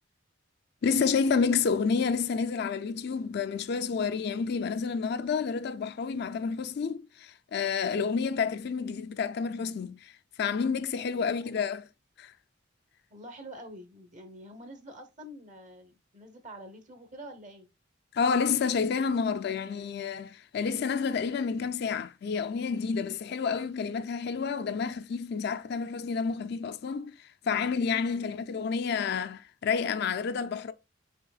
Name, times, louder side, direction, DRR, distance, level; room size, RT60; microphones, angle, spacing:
voice 1, 0.8-10.1 10.4-11.9 12.2-12.3 18.1-30.7, left 5 dB, 55° left, 0.4 m, -29 dB
voice 2, 13.1-17.7 28.0-28.4, right 1 dB, 40° right, 0.9 m, -47 dB
5.7 x 4.0 x 2.3 m
head